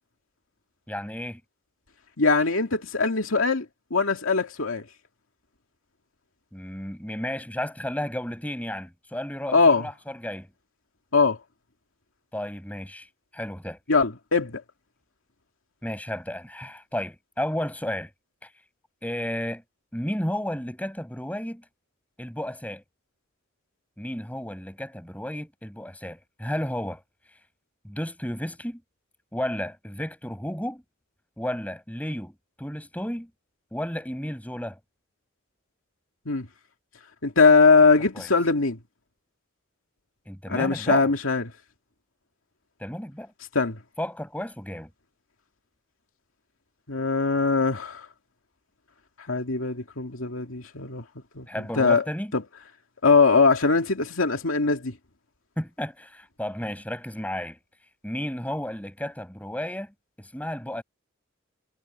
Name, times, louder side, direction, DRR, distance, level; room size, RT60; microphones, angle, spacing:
voice 1, 0.9-1.4 6.5-10.5 12.3-13.1 13.3-13.8 15.8-18.1 18.4-18.5 19.0-19.6 19.9-21.6 22.2-22.8 24.0-27.0 27.8-28.8 29.3-30.8 31.4-33.3 33.7-34.8 38.1-38.3 40.3-41.1 42.8-43.3 44.0-44.9 51.5-52.3 55.6-57.6 58.0-59.9 60.2-60.8, left 1 dB, 5° left, 7.4 m, -33 dB
voice 2, 2.2-3.7 3.9-4.8 9.5-9.8 11.1-11.4 13.9-14.6 36.3-36.5 37.2-38.8 40.5-41.5 43.5-43.8 46.9-48.1 49.3-51.0 51.4-51.5 51.8-52.0 52.3-52.4 53.0-54.9, left 4 dB, 90° left, 2.3 m, -21 dB
head